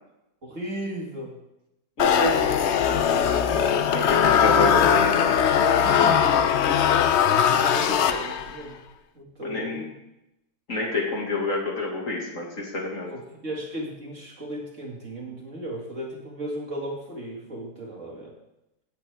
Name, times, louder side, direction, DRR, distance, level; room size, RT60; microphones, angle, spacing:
voice 1, 0.4-1.4 4.3-4.9 5.3-6.4 7.5-8.8 9.2-9.9 13.1-18.3, right 1 dB, 45° right, -1 dB, 2.4 m, -36 dB
sound 1, 2.0-8.6, left 8 dB, 75° left, 0.6 m, -20 dB
voice 2, 2.0-2.6 3.1-5.3 6.7-7.0 9.4-9.8 10.7-13.1, left 2 dB, 45° left, -1 dB, 2.2 m, -29 dB
17.0 x 8.2 x 3.5 m, 0.90 s
omnidirectional pair, 1.9 m